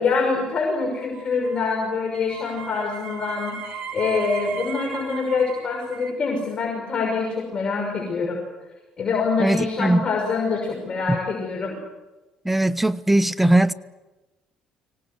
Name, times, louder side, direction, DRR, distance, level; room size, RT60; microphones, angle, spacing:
voice 1, 0.0-8.4 9.0-11.7, left 4 dB, 45° left, 0 dB, 6.1 m, -25 dB
sound 1, 1.0-6.1, right 7 dB, 55° right, 4.6 m, -36 dB
voice 2, 9.4-10.1 11.1-11.2 12.4-13.7, right 1 dB, 5° right, 17 dB, 1.1 m, -19 dB
24.5 x 18.0 x 9.5 m, 1.1 s
supercardioid pair, 75°, 2 cm